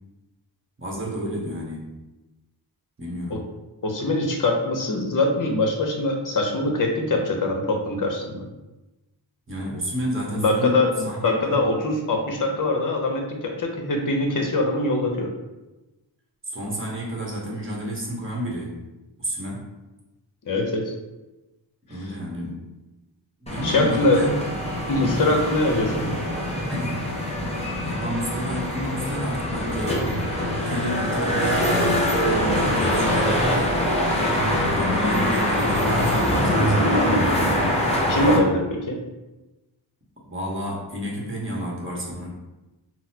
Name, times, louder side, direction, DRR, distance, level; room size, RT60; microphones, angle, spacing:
voice 1, 0.8-1.9 3.0-3.4 9.5-11.6 16.5-18.8 19.2-19.7 21.9-22.6 23.4-24.4 26.7-27.1 27.8-30.1 30.6-33.8 34.5-37.0 40.3-42.3, equal, 25° right, -3 dB, 1.1 m, -30 dB
voice 2, 3.8-8.4 10.3-10.9 11.2-15.3 20.5-20.8 23.6-24.2 24.9-26.1 38.1-39.0, left 2 dB, 40° left, 2 dB, 0.7 m, -23 dB
sound 1, 23.5-38.4, equal, 15° left, 0.8 m, -23 dB
3.8 x 2.0 x 2.8 m, 1.1 s
cardioid pair, 60°, 47 cm